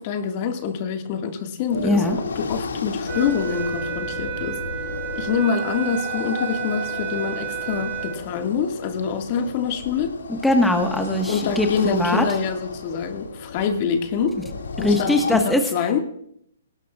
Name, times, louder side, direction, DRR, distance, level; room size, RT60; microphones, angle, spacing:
voice 1, 0.0-2.1 2.4-4.6 5.2-10.2 11.3-14.4 14.8-16.0, left 6 dB, 40° left, 6 dB, 1.9 m, -25 dB
sound 1, 1.7-15.4, left 4 dB, 85° left, 2.3 m, -33 dB
voice 2, 1.8-2.2 10.3-12.2 14.8-15.6, left 1 dB, 5° left, 3 dB, 1.5 m, -21 dB
sound 2, 3.1-8.2, right 13 dB, 25° right, 4.7 m, -32 dB
19.5 x 17.5 x 2.5 m, 0.69 s
hypercardioid pair, 145°, 0 cm